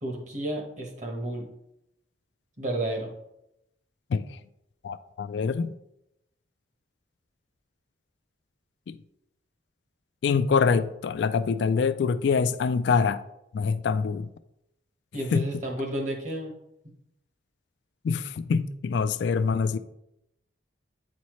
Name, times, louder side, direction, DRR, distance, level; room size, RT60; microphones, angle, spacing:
voice 1, 0.0-1.5 2.6-3.1 15.1-16.5, right 1 dB, 40° right, 1.1 m, -32 dB
voice 2, 4.8-5.7 8.9-9.0 10.2-13.2 13.5-14.3 15.3-15.4 18.0-19.8, left 5 dB, 65° left, 0.3 m, -25 dB
8.6 x 4.2 x 3.1 m
head